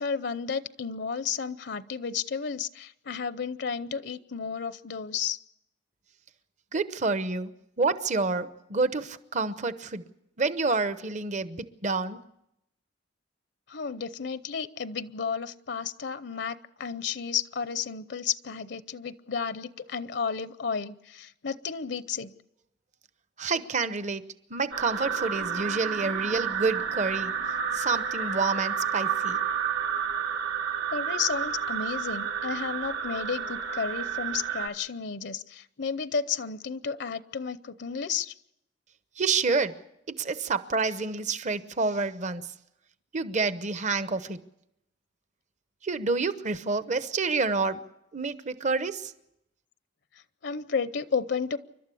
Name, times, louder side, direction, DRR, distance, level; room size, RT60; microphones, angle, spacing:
voice 1, 0.0-5.4 13.7-22.3 30.9-38.3 50.4-51.6, left 6 dB, 65° left, 0.7 m, -32 dB
voice 2, 6.7-10.0 10.4-12.2 23.4-24.2 24.5-27.3 27.7-29.4 39.2-39.8 40.1-42.5 43.1-44.4 45.8-47.8 48.1-49.1, right 4 dB, 40° right, 0.9 m, -28 dB
sound 1, 24.7-34.7, right 7 dB, 80° right, 2.2 m, -30 dB
29.0 x 12.5 x 8.4 m
head